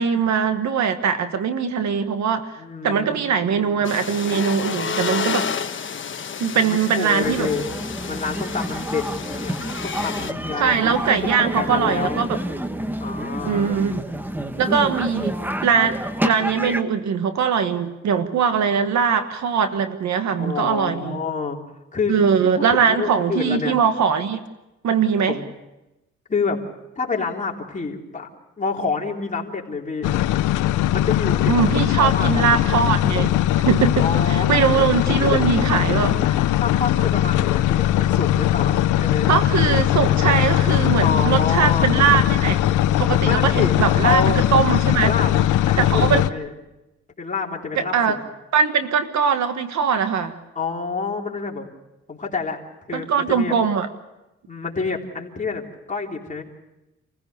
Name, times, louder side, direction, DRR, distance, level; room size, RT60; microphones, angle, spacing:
voice 1, 0.0-2.6 2.8-5.5 6.4-7.5 10.6-12.4 13.5-14.0 14.6-15.3 15.6-21.2 22.1-24.4 24.8-25.4 31.5-33.3 33.6-36.4 39.3-42.6 43.0-45.1 45.8-46.2 47.7-48.2 48.5-50.3 52.9-53.9, right 6 dB, 65° right, 9 dB, 1.6 m, -21 dB
voice 2, 2.6-3.9 6.5-7.7 8.1-10.9 11.4-12.2 13.0-13.8 20.4-21.6 21.9-22.2 22.7-23.8 25.3-25.5 26.3-26.6 26.9-28.3 28.6-30.1 30.9-32.4 34.0-34.9 35.2-35.4 36.0-36.3 36.6-39.3 41.0-42.1 43.2-43.7 44.0-44.4 45.0-46.5 47.2-47.9 50.5-51.6 52.1-52.6 52.9-53.5 54.5-56.4, left 4 dB, 25° left, -1 dB, 3.5 m, -28 dB
sound 1, 3.8-10.3, left 7 dB, 40° left, 1.2 m, -30 dB
sound 2, 7.2-16.8, equal, 5° right, 1.2 m, -28 dB
sound 3, 30.0-46.3, left 12 dB, 80° left, 0.8 m, -20 dB
27.5 x 15.5 x 6.8 m, 0.97 s
cardioid pair, 90°, 30 cm